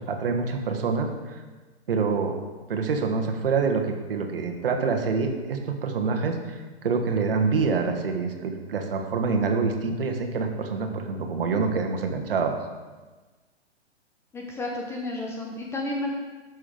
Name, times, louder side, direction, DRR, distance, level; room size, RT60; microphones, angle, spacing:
voice 1, 0.1-1.4 1.9-2.4 2.7-12.5, right 4 dB, 55° right, 4 dB, 1.3 m, -26 dB
voice 2, 14.3-16.1, left 2 dB, 10° left, -1 dB, 0.6 m, -31 dB
11.0 x 6.2 x 3.8 m, 1.3 s
figure-of-eight pair, 110°, 34 cm